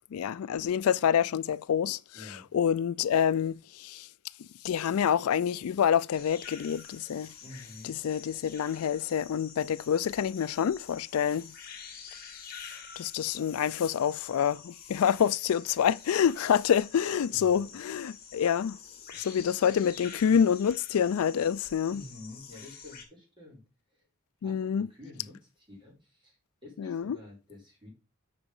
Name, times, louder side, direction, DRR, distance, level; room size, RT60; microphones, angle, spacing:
voice 1, 0.1-2.0 2.3-4.1 4.6-7.3 7.9-11.5 13.0-18.8 19.1-22.0 24.4-24.9 26.8-27.2, left 8 dB, 80° left, 0.4 m, -27 dB
voice 2, 2.1-2.4 7.4-8.0 17.3-18.3 19.1-19.4 21.9-23.6 23.9-24.1 24.4-26.4 26.6-27.9, left 2 dB, 20° right, 4.7 m, -49 dB
sound 1, 6.1-23.0, left 6 dB, 40° left, 2.3 m, -48 dB
6.9 x 6.0 x 5.5 m
head